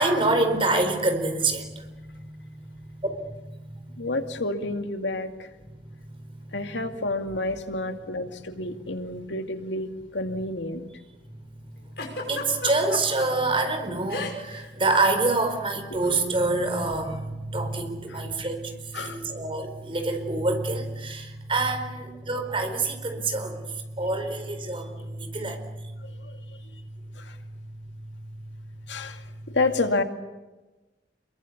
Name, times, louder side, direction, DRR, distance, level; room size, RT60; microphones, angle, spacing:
voice 1, 0.0-4.1 6.0-6.1 12.3-25.9, right 2 dB, 30° right, 6 dB, 4.4 m, -27 dB
voice 2, 4.0-5.5 6.5-10.9 18.1-18.2 18.9-19.3 26.0-26.8 27.2-27.4 28.9-30.0, left 2 dB, 90° left, 6 dB, 2.3 m, -30 dB
Giggle, 12.0-13.3 14.1-14.6 14.9-15.1 16.0-16.2, left 3 dB, 60° left, 6.1 m, -33 dB
28.0 x 23.0 x 8.5 m, 1.2 s
head